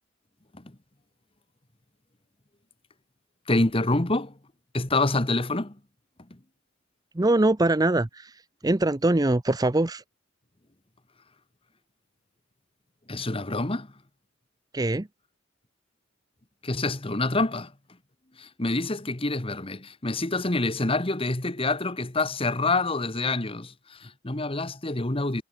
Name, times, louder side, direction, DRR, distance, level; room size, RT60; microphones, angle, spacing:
voice 1, 3.5-4.3 4.7-5.8 13.1-13.9 16.6-17.7 18.4-25.4, left 2 dB, 25° left, 1.4 m, -27 dB
voice 2, 7.2-8.3 8.6-10.0 14.7-15.1, right 2 dB, 20° right, 0.6 m, -22 dB
head